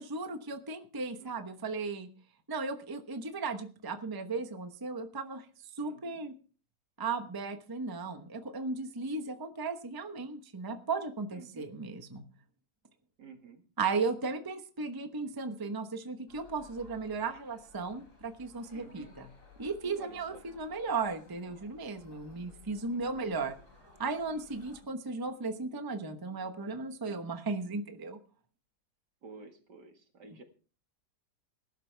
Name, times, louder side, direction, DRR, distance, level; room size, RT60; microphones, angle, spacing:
voice 1, 0.0-2.1 2.5-5.5 5.8-6.3 7.0-12.2 13.8-19.3 19.6-23.6 24.0-28.2, right 4 dB, 15° right, 7 dB, 0.8 m, -36 dB
voice 2, 1.2-1.5 5.8-6.2 11.3-11.7 13.2-13.6 18.7-19.2 20.0-20.4 22.9-23.3 29.2-30.4, right 4 dB, 75° right, 5 dB, 2.6 m, -52 dB
sound 1, 16.3-24.8, left 3 dB, 45° left, 4.3 m, -58 dB
18.5 x 12.0 x 3.4 m, 0.37 s
omnidirectional pair, 1.9 m